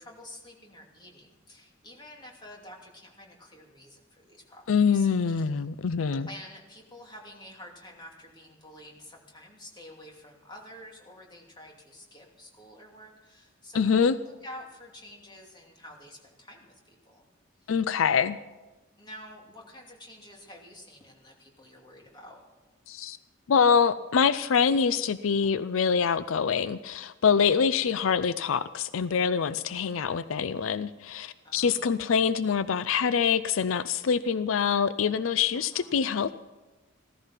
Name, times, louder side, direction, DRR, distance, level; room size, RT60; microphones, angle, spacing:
voice 1, 0.0-5.5 6.3-14.1 14.4-17.2 17.6-17.8 19.0-22.4 27.5-27.9 31.4-32.0 35.5-36.0, left 1 dB, 20° left, 0 dB, 2.7 m, -49 dB
voice 2, 4.7-6.3 13.7-14.2 17.7-18.4 22.9-23.2 23.5-36.3, left 6 dB, 85° left, 14 dB, 0.5 m, -25 dB
15.5 x 14.0 x 5.8 m, 1.1 s
head